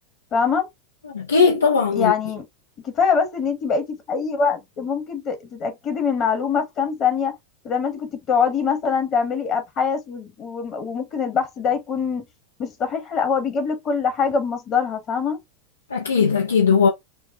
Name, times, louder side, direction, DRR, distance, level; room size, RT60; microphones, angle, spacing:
voice 1, 0.3-0.7 1.9-2.4 2.8-7.3 7.6-12.2 12.6-15.4, left 6 dB, 40° left, 1.4 m, -23 dB
voice 2, 1.0-2.1 15.9-16.9, left 5 dB, 85° left, 0.8 m, -18 dB
4.6 x 2.3 x 2.4 m
hypercardioid pair, 90°, 0 cm